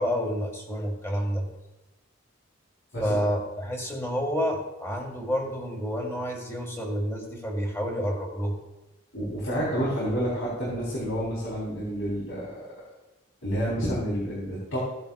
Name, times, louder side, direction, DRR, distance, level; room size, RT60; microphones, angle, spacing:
voice 1, 0.0-1.5 3.0-8.5, equal, 15° left, 1 dB, 1.8 m, -29 dB
voice 2, 9.1-12.7 13.4-14.8, equal, 80° left, -7 dB, 3.8 m, -29 dB
15.5 x 10.5 x 2.4 m, 1.0 s
head